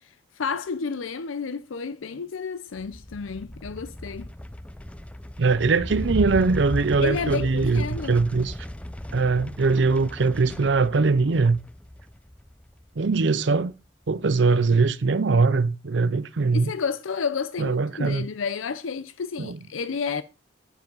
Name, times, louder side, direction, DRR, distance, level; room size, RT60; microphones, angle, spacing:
voice 1, 0.0-4.3 7.0-8.2 16.5-20.2, left 5 dB, 85° left, 0.6 m, -31 dB
sound 1, 2.8-13.4, left 1 dB, 5° left, 0.4 m, -36 dB
voice 2, 5.4-8.5 9.1-11.6 13.0-13.7 14.1-16.7 17.6-18.3 19.4-19.6, right 4 dB, 65° right, 0.6 m, -21 dB
9.2 x 7.7 x 5.4 m
head